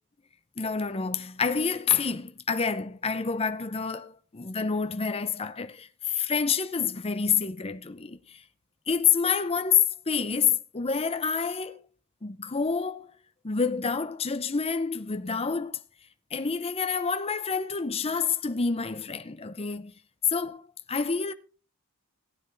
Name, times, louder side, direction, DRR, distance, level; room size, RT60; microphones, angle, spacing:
voice 1, 0.6-8.4 8.9-11.8 12.2-13.1 13.4-15.8 16.3-19.9 20.3-21.3, left 6 dB, 25° left, 0.6 m, -28 dB
17.5 x 9.6 x 2.6 m
head